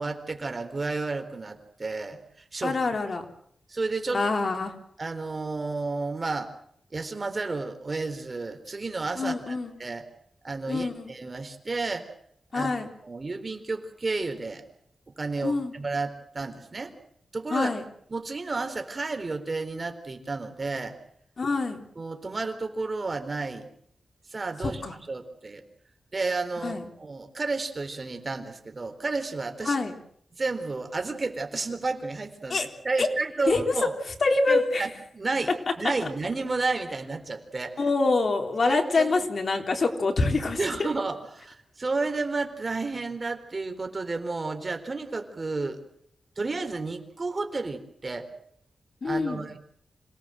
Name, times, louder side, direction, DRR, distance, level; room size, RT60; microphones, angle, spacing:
voice 1, 0.0-2.7 3.7-4.2 5.0-6.5 6.9-10.0 10.4-12.1 12.5-12.7 13.0-14.6 15.2-16.9 17.3-17.8 18.1-21.0 22.0-23.7 24.3-25.6 26.1-29.8 30.4-33.9 34.5-35.5 35.8-37.8 38.6-39.1 40.6-45.8 46.4-48.3 49.0-49.6, right 3 dB, 35° right, 7 dB, 3.9 m, -31 dB
voice 2, 2.6-3.2 4.1-4.7 9.2-9.7 10.7-11.1 12.5-12.9 15.4-15.7 17.5-17.8 21.4-21.9 24.6-24.9 26.6-26.8 29.7-29.9 32.5-32.7 33.0-33.1 33.5-33.8 34.2-34.8 37.8-40.9 49.0-49.5, left 3 dB, 55° left, 4 dB, 3.9 m, -25 dB
27.5 x 18.0 x 7.8 m, 0.68 s
wide cardioid pair, 90°, 0 cm